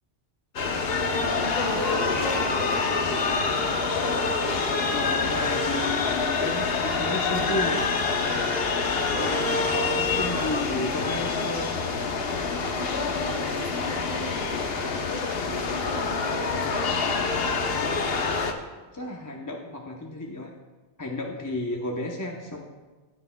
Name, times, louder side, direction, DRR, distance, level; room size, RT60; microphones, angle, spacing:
sound 1, 0.6-18.5, left 4 dB, 60° left, 1.0 m, -26 dB
voice 1, 0.6-3.1 9.1-9.5 10.0-10.6 12.5-17.4, left 1 dB, 40° left, -3 dB, 2.3 m, -36 dB
sound 2, 1.1-3.9 4.3-6.1 6.8-7.9 8.2-9.6 10.1-11.9, right 1 dB, 25° right, 0.6 m, -40 dB
voice 2, 4.8-7.9 9.2-11.7 18.9-20.5 21.0-22.6, left 1 dB, 20° left, 0 dB, 0.7 m, -32 dB
15.5 x 9.6 x 2.2 m, 1.3 s
omnidirectional pair, 1.2 m